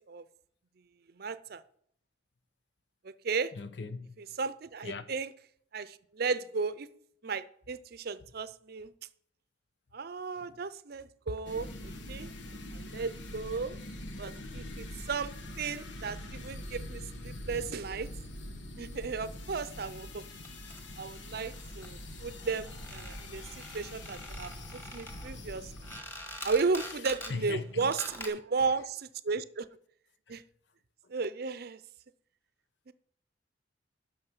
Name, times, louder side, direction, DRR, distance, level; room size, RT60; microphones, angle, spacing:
voice 1, 1.1-1.6 3.0-3.5 4.2-5.3 5.7-6.9 7.2-8.9 9.9-11.7 12.1-12.3 12.7-13.8 14.2-18.1 18.8-20.2 21.0-24.5 24.9-25.7 26.4-29.7 30.3-30.4 31.1-31.8 32.9-33.0, right 4 dB, 55° right, 0.6 m, -34 dB
voice 2, 3.5-4.2 4.8-5.0 10.4-10.6 27.3-27.9, left 4 dB, 70° left, 0.8 m, -39 dB
sound 1, 11.5-26.0, left 1 dB, 90° left, 1.3 m, -44 dB
sound 2, 20.5-20.9 21.5-21.6 21.8-21.9 22.1-22.2 22.4-27.4 27.8-28.3, equal, 15° left, 1.7 m, -45 dB
10.5 x 6.3 x 5.5 m
head